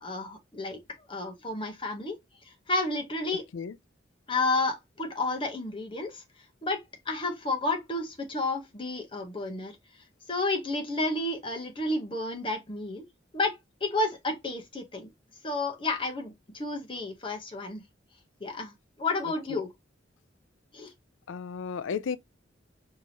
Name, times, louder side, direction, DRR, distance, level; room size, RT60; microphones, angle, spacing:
voice 1, 0.0-0.8 1.1-2.2 2.7-3.4 4.3-6.2 6.6-6.8 7.1-9.8 10.3-13.0 13.3-15.1 15.4-17.8 18.4-19.7 20.7-20.9, left 2 dB, 25° left, 0.8 m, -31 dB
voice 2, 21.3-22.2, left 6 dB, 85° left, 0.4 m, -33 dB
4.7 x 2.8 x 2.7 m
head